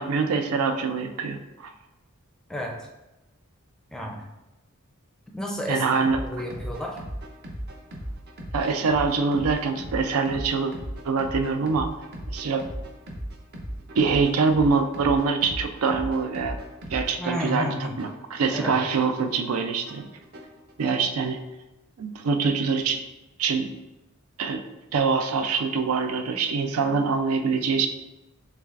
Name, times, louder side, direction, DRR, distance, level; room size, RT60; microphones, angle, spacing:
voice 1, 0.0-1.7 5.7-6.2 8.5-10.7 11.0-11.9 12.3-12.6 13.9-16.6 16.9-20.1 20.8-21.4 22.0-23.0 23.4-23.7 24.4-24.6 24.9-27.9, right 5 dB, 80° right, 7 dB, 0.4 m, -24 dB
voice 2, 2.5-2.9 3.9-4.3 5.3-5.9 6.2-7.0 17.2-18.0 18.5-18.8, left 1 dB, 5° left, 0 dB, 0.4 m, -31 dB
sound 1, 6.0-21.0, equal, 50° right, 0.7 m, -38 dB
6.4 x 2.4 x 2.4 m, 1.0 s
head